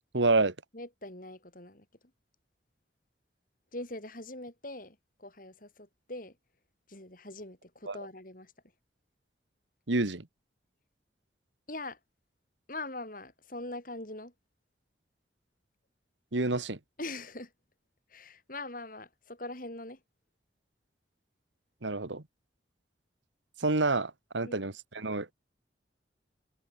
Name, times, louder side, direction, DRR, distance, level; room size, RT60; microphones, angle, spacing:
voice 1, 0.1-0.5 7.9-8.0 9.9-10.3 16.3-16.8 21.8-22.2 23.6-25.3, right 3 dB, 90° right, 1.7 m, -28 dB
voice 2, 0.7-1.9 3.7-6.4 6.9-8.5 11.7-12.0 12.7-14.3 17.0-17.5 18.1-20.0 24.4-24.6, left 2 dB, 50° left, 6.4 m, -42 dB
head